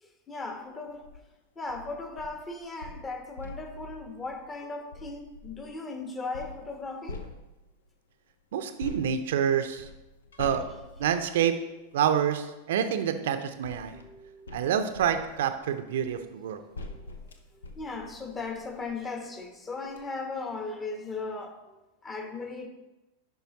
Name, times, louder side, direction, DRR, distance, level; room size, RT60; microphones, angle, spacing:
voice 1, 0.0-1.1 1.6-7.2 11.1-11.2 13.9-14.6 16.5-17.1 17.5-22.7, left 3 dB, 20° left, 5 dB, 1.1 m, -38 dB
sound 1, 0.9-1.2 1.7-5.7 6.3-7.9 8.8-12.2 13.1-19.0 19.5-19.6 19.9-20.0, left 2 dB, 70° left, 0.7 m, -45 dB
voice 2, 8.5-9.9 10.4-10.6 11.0-11.5 11.9-14.0 14.5-16.6, right 8 dB, 55° right, 9 dB, 0.6 m, -27 dB
11.0 x 5.6 x 3.0 m, 1.0 s
figure-of-eight pair, 90°, 0 cm